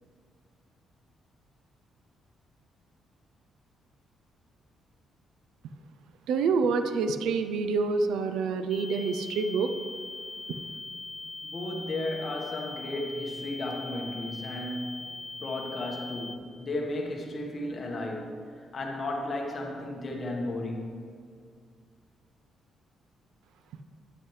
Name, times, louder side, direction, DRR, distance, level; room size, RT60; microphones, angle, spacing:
voice 1, 6.3-9.7, right 4 dB, 80° right, 8 dB, 0.5 m, -27 dB
sound 1, 8.7-16.4, left 3 dB, 20° left, 1.1 m, -41 dB
voice 2, 11.4-18.4 18.7-20.9, left 1 dB, 40° left, 1 dB, 1.4 m, -34 dB
9.5 x 7.9 x 3.2 m, 2.1 s
cardioid pair, 90°, 0 cm